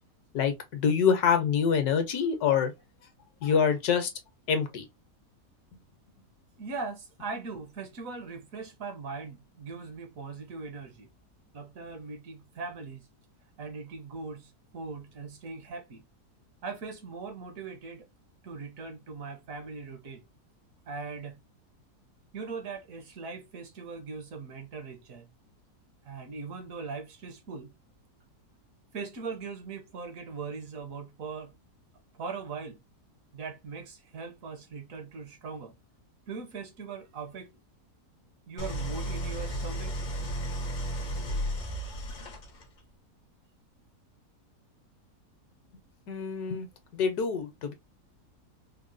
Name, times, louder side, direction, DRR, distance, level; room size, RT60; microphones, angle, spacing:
voice 1, 0.3-2.7 3.4-4.1 4.5-4.9 46.1-46.7 46.9-47.7, left 6 dB, 70° left, 1.2 m, -26 dB
voice 2, 6.6-11.1 11.5-13.1 13.6-16.0 16.6-18.1 18.4-20.2 20.9-21.4 22.3-25.3 26.0-27.7 28.9-31.5 32.1-32.8 33.3-35.7 36.3-37.5 38.5-40.0 41.4-41.5, right 4 dB, 65° right, 1.1 m, -40 dB
Idling, 38.6-42.8, equal, 50° left, 0.5 m, -33 dB
3.6 x 2.2 x 2.5 m
omnidirectional pair, 1.7 m